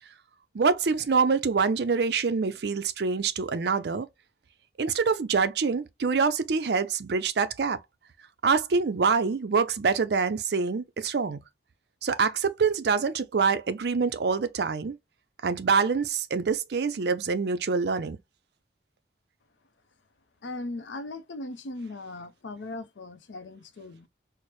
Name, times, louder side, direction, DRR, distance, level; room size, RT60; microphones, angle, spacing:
voice 1, 0.5-4.1 4.8-7.8 8.4-11.4 12.0-15.0 15.4-18.2, right 5 dB, 65° right, 0.5 m, -25 dB
voice 2, 20.4-24.1, left 2 dB, 85° left, 0.5 m, -38 dB
4.4 x 2.0 x 3.0 m
head